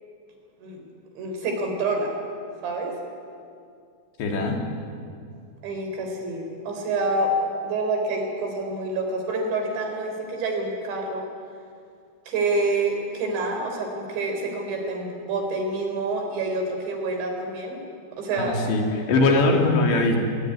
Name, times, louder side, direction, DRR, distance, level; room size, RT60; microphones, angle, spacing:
voice 1, 1.2-2.1 2.6-2.9 5.6-7.3 7.6-11.3 12.3-17.8 18.2-18.7, right 2 dB, 75° right, 3 dB, 6.5 m, -27 dB
voice 2, 4.2-4.6 18.4-20.2, left 2 dB, 70° left, 2 dB, 5.0 m, -21 dB
28.5 x 19.5 x 9.7 m, 2.4 s
omnidirectional pair, 5.3 m